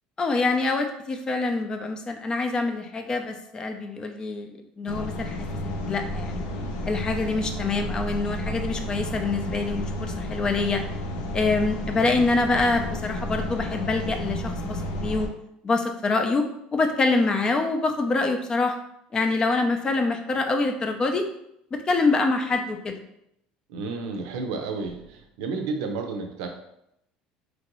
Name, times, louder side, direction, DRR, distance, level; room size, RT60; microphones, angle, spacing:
voice 1, 0.2-6.4 6.8-10.8 11.3-15.3 15.6-16.4 16.7-18.8 19.1-21.3 21.7-23.0, left 3 dB, 25° left, 5 dB, 0.4 m, -25 dB
sound 1, 4.9-15.3, left 1 dB, 80° left, 0.5 m, -31 dB
voice 2, 23.7-26.5, right 4 dB, 85° right, 4 dB, 0.5 m, -31 dB
3.0 x 2.6 x 2.9 m, 0.79 s
cardioid pair, 120°, 3 cm